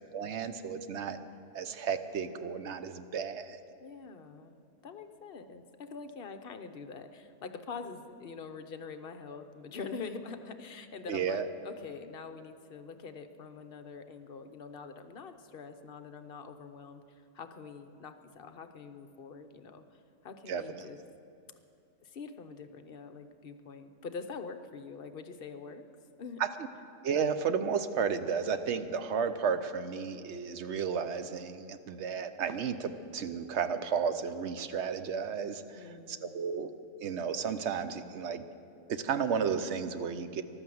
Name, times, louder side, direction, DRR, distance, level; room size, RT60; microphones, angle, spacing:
voice 1, 0.1-1.2 1.5-3.6 11.1-11.5 20.5-20.9 26.4-26.5 27.0-35.6 36.1-36.7 37.0-38.4 38.9-40.4, right 6 dB, 60° right, 10 dB, 1.0 m, -33 dB
voice 2, 3.8-21.0 22.0-25.9 26.2-26.4 35.7-36.6, left 5 dB, 50° left, 8 dB, 0.9 m, -45 dB
14.0 x 12.0 x 7.8 m, 2.5 s
omnidirectional pair, 1.4 m